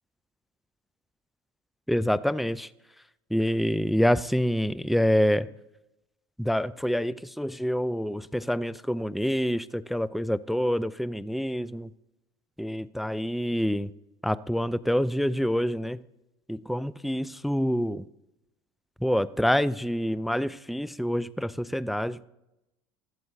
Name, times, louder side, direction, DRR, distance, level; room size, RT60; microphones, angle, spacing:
voice 1, 1.9-2.7 3.3-5.5 6.4-11.9 12.6-13.9 14.2-16.0 16.5-18.0 19.0-22.2, equal, ahead, 0.3 m, -26 dB
14.5 x 12.0 x 2.6 m
hypercardioid pair, 80°, 12 cm